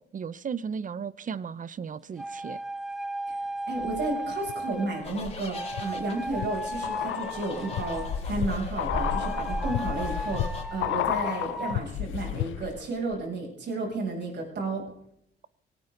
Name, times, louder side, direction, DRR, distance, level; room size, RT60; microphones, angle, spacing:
voice 1, 0.0-2.6, right 6 dB, 40° right, 0.8 m, -35 dB
sound 1, 2.2-5.1 5.5-8.2 8.9-11.8, right 1 dB, ahead, 0.7 m, -35 dB
voice 2, 3.7-14.8, right 2 dB, 60° right, 7.6 m, -32 dB
sound 2, 3.8-4.5 5.0-12.9 13.1-13.2, left 14 dB, 80° left, 0.6 m, -33 dB
sound 3, 5.0-10.6, left 2 dB, 30° left, 4.4 m, -36 dB
19.5 x 17.5 x 4.0 m
cardioid pair, 90°, 20 cm